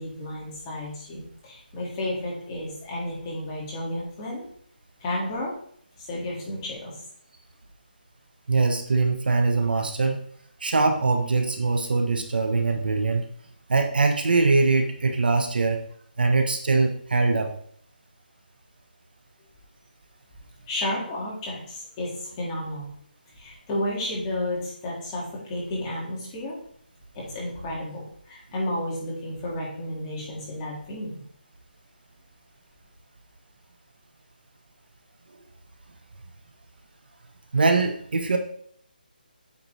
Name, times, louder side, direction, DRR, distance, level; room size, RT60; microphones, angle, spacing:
voice 1, 0.0-4.4 5.0-5.5 6.0-7.0 20.7-22.9 23.4-26.6 27.1-31.2, left 1 dB, 15° left, -6 dB, 1.8 m, -32 dB
voice 2, 8.5-10.2 10.6-13.2 13.7-15.8 16.2-17.5 37.5-38.4, right 3 dB, 65° right, 5 dB, 1.0 m, -22 dB
8.3 x 4.3 x 3.1 m, 0.62 s
hypercardioid pair, 170°, 5 cm